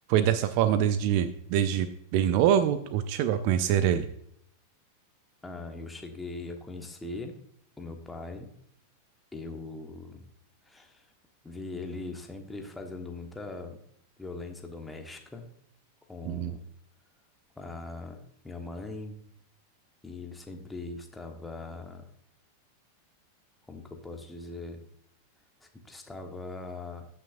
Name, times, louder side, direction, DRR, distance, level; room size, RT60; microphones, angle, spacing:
voice 1, 0.1-4.1 16.3-16.5, right 10 dB, 45° right, 13 dB, 0.5 m, -25 dB
voice 2, 5.4-7.4 7.8-8.5 9.3-10.2 10.6-11.1 11.4-13.8 14.2-15.5 16.1-16.6 17.6-19.2 20.0-22.1 23.7-24.8 25.6-27.1, left 3 dB, 10° left, 4 dB, 1.3 m, -40 dB
14.5 x 6.0 x 2.6 m, 0.70 s
figure-of-eight pair, 90°, 0 cm